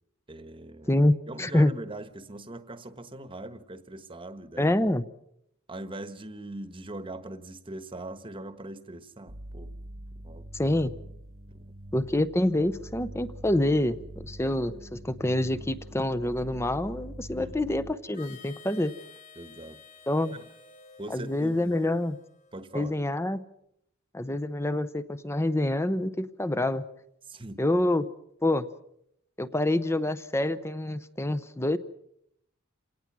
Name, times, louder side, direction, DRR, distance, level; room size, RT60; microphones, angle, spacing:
voice 1, 0.3-1.0 1.3-4.8 5.7-9.7 10.1-10.5 11.5-11.7 17.3-17.7 19.3-19.8 20.3-20.4 21.0-21.7 22.5-22.9 27.3-27.6, right 2 dB, 25° right, 1.2 m, -41 dB
voice 2, 0.9-1.7 4.6-5.0 10.5-10.9 11.9-18.9 20.1-20.4 21.1-22.2 22.7-23.4 24.1-26.8 27.6-28.1 28.4-28.7 29.4-31.8, left 1 dB, 15° left, 0.8 m, -26 dB
sound 1, 9.3-17.9, right 1 dB, 90° right, 1.8 m, -44 dB
Harmonica, 18.1-22.9, left 6 dB, 40° left, 5.0 m, -52 dB
28.0 x 18.0 x 6.1 m
head